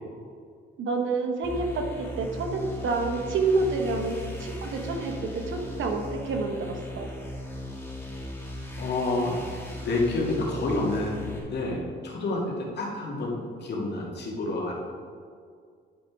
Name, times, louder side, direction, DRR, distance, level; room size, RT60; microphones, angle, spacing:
voice 1, 0.8-7.1, right 3 dB, 75° right, 4 dB, 1.0 m, -28 dB
sound 1, 1.4-11.4, left 1 dB, 10° left, 2.0 m, -37 dB
voice 2, 8.8-9.4 9.8-14.7, left 2 dB, 60° left, -2 dB, 1.9 m, -29 dB
10.5 x 5.1 x 3.6 m, 2.1 s
cardioid pair, 90°, 20 cm